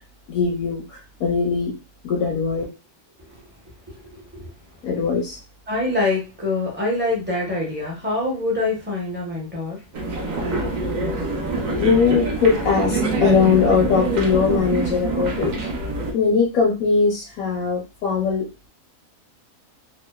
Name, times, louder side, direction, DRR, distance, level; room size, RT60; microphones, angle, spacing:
voice 1, 0.3-1.7 2.0-2.6 4.8-5.4 11.7-15.5 16.1-18.4, left 5 dB, 85° left, -2 dB, 1.0 m, -20 dB
voice 2, 3.9-4.5 5.7-9.8 10.5-11.2, left 2 dB, 10° right, -3 dB, 0.5 m, -26 dB
sound 1, 9.9-16.1, right 2 dB, 70° right, 0.4 m, -25 dB
2.7 x 2.1 x 2.2 m, 0.30 s
omnidirectional pair, 1.4 m